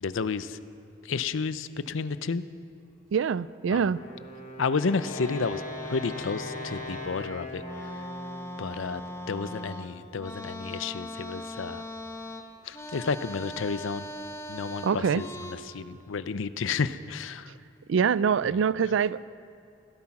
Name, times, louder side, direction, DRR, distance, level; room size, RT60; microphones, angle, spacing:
voice 1, 0.0-0.6 1.0-2.4 3.7-3.9 4.6-5.6 5.9-7.6 8.6-9.0 9.3-11.8 12.7-14.0 14.5-17.5, left 5 dB, 80° left, 14 dB, 0.6 m, -31 dB
voice 2, 3.1-4.0 14.8-15.2 17.9-19.3, right 6 dB, 70° right, 18 dB, 0.3 m, -24 dB
Wind instrument woodwind instrument, 3.9-9.6, left 2 dB, 40° left, 2.6 m, -41 dB
sound 1, 4.8-7.2 7.6-15.5, left 1 dB, 15° left, 1.0 m, -40 dB
16.5 x 12.5 x 5.9 m, 2.6 s
head